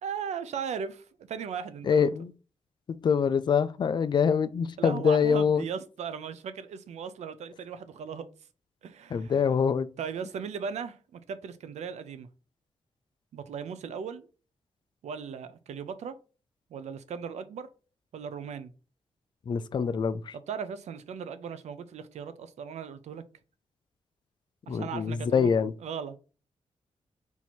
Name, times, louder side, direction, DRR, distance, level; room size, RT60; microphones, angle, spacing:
voice 1, 0.0-2.1 4.8-8.3 8.8-9.6 10.0-12.3 13.3-14.3 15.0-16.1 16.7-17.7 18.1-18.7 20.5-23.2 24.7-25.5 25.8-26.2, right 7 dB, 85° right, 0.6 m, -37 dB
voice 2, 1.8-2.3 2.9-5.6 9.1-9.9 19.5-20.4 24.7-25.7, left 6 dB, 40° left, 0.3 m, -25 dB
4.5 x 2.7 x 4.3 m
cardioid pair, 100°, 11 cm